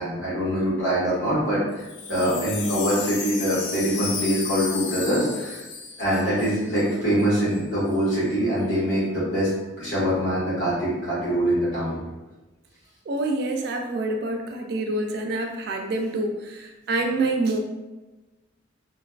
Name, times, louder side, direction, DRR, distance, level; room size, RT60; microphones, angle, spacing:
voice 1, 0.0-1.6 2.1-5.6 6.0-12.0, equal, 85° left, -9 dB, 1.3 m, -24 dB
Wind chime, 1.7-6.9 7.2-7.3 7.5-8.0, left 5 dB, 65° left, 0.3 m, -34 dB
voice 2, 13.1-17.6, right 2 dB, 55° right, 3 dB, 0.3 m, -26 dB
2.5 x 2.3 x 2.3 m, 1.1 s
head